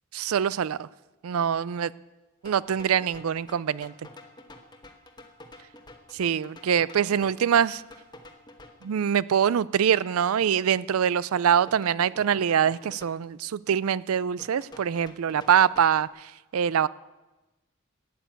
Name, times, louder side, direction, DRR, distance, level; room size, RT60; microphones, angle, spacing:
voice 1, 0.1-0.9 1.2-1.9 2.4-3.9 6.1-7.8 8.8-16.9, right 8 dB, 75° right, 20 dB, 0.4 m, -24 dB
sound 1, 2.4-9.0 11.7-13.1 14.4-16.1, left 2 dB, 20° left, 1.2 m, -49 dB
12.5 x 9.4 x 8.9 m, 1.1 s
head